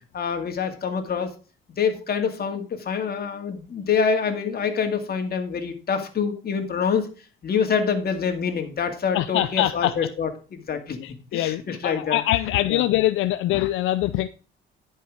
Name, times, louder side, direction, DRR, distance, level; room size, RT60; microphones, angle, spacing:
voice 1, 0.1-1.3 1.8-7.1 7.4-12.2 12.7-12.8, left 6 dB, 50° left, 2.2 m, -26 dB
voice 2, 9.1-10.1 11.0-14.3, left 14 dB, 90° left, 0.5 m, -24 dB
10.5 x 5.5 x 4.9 m
cardioid pair, 90°, 20 cm